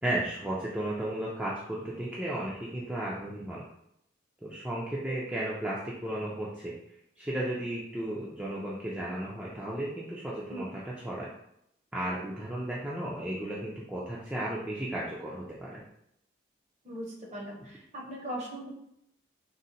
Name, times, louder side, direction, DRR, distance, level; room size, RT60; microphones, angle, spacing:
voice 1, 0.0-3.6 4.4-6.7 7.2-11.3 11.9-15.8, right 1 dB, 5° right, -7 dB, 0.3 m, -34 dB
voice 2, 16.8-18.7, right 1 dB, 35° right, -3 dB, 0.7 m, -39 dB
3.8 x 2.1 x 2.6 m, 0.76 s
head